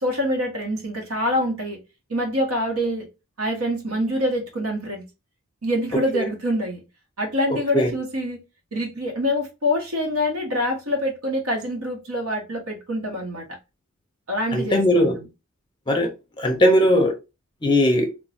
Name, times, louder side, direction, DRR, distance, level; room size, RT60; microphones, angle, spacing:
voice 1, 0.0-1.8 2.1-3.1 3.4-5.0 5.6-6.8 7.2-8.4 8.7-13.4 14.3-15.1, left 1 dB, 80° right, 1.0 m, -25 dB
voice 2, 14.5-15.2 15.9-16.1 16.4-17.1 17.6-18.1, equal, 20° left, 0.5 m, -18 dB
3.0 x 2.1 x 2.6 m
head